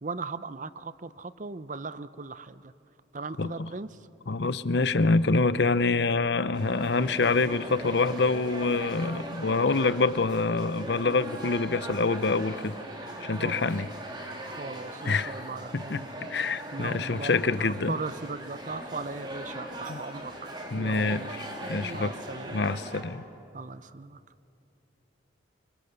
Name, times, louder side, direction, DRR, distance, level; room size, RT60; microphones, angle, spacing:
voice 1, 0.0-2.7 3.1-4.1 7.1-7.2 13.4-13.7 14.6-16.1 16.7-17.3 17.6-21.4 21.6-22.7 23.5-24.2, right 3 dB, 40° right, 15 dB, 0.6 m, -38 dB
voice 2, 4.3-12.8 13.2-13.9 15.0-15.3 15.7-16.0 16.3-17.9 19.9-20.0 20.7-22.1 22.5-23.2, left 3 dB, 65° left, 15 dB, 0.7 m, -26 dB
sound 1, 6.5-23.0, right 1 dB, 25° right, 3.0 m, -40 dB
28.5 x 25.5 x 6.9 m, 2.7 s
head